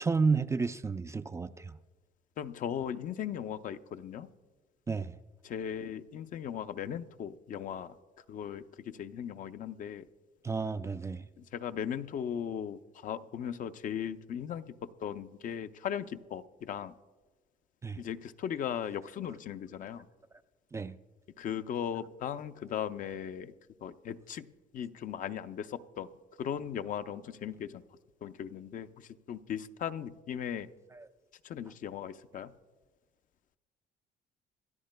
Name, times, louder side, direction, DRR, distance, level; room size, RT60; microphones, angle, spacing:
voice 1, 0.0-1.8 4.9-5.2 10.4-11.3 17.8-18.0 20.7-21.0 30.9-31.1, right 4 dB, 15° right, 10 dB, 0.3 m, -31 dB
voice 2, 2.4-4.3 5.4-8.0 8.3-10.1 11.4-16.9 18.0-20.1 21.4-23.5 23.8-26.1 26.4-27.8 28.2-30.7 31.4-32.5, left 9 dB, 50° left, 11 dB, 0.5 m, -38 dB
26.5 x 13.0 x 2.2 m, 1.3 s
cardioid pair, 110°, 17 cm